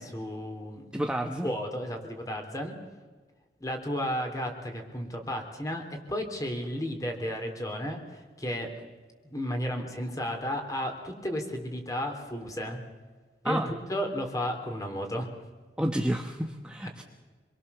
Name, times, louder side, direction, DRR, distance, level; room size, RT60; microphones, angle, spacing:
voice 1, 0.0-1.0 1.4-2.8 3.6-8.7 9.2-12.8 13.4-15.3, equal, 20° left, 4 dB, 3.6 m, -33 dB
voice 2, 0.9-1.5 13.4-13.7 15.8-17.0, right 1 dB, 5° right, 3 dB, 1.1 m, -30 dB
26.5 x 23.0 x 7.1 m, 1.4 s
head